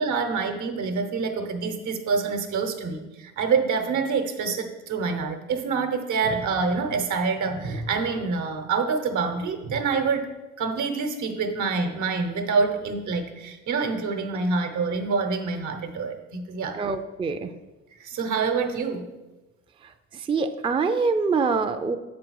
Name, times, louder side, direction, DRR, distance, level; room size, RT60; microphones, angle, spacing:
voice 1, 0.0-10.3 10.6-16.8 18.0-19.1, right 4 dB, 75° right, 6 dB, 1.0 m, -26 dB
voice 2, 16.7-17.5 20.3-22.0, right 4 dB, 20° right, 8 dB, 0.4 m, -24 dB
7.3 x 5.1 x 4.6 m, 1.1 s
cardioid pair, 90°, 30 cm